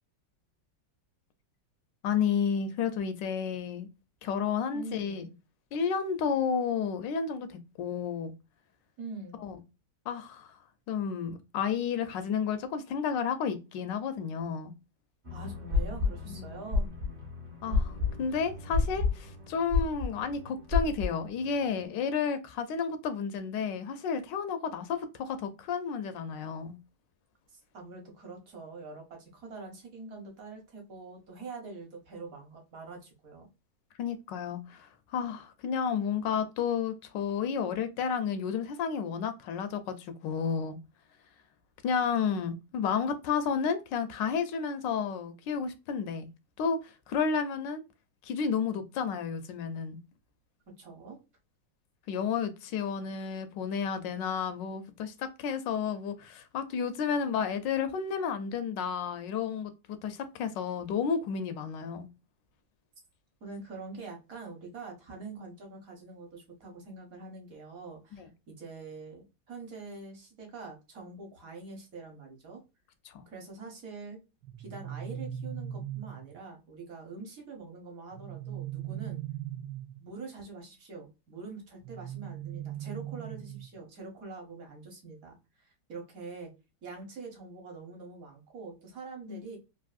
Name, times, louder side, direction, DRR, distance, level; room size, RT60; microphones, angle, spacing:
voice 1, 2.0-3.9 4.2-5.3 5.7-8.3 9.4-9.6 10.1-10.6 10.9-14.7 16.4-16.5 17.6-26.8 34.0-40.8 41.8-46.3 46.6-47.8 48.2-50.0 52.1-62.1 68.1-68.3 73.1-73.2 89.3-89.4, left 6 dB, 85° left, 1.3 m, -31 dB
voice 2, 4.7-5.4 9.0-9.4 15.3-16.9 27.5-33.5 50.8-51.2 63.4-72.6 73.3-74.2 74.6-79.2 80.0-86.5 86.8-89.6, right 3 dB, 55° right, 1.3 m, -44 dB
sound 1, 15.2-21.8, left 4 dB, 35° right, 0.8 m, -31 dB
sound 2, 74.4-76.4 78.1-80.1 81.8-83.8, right 11 dB, 80° right, 1.3 m, -39 dB
3.4 x 2.6 x 2.4 m
omnidirectional pair, 1.9 m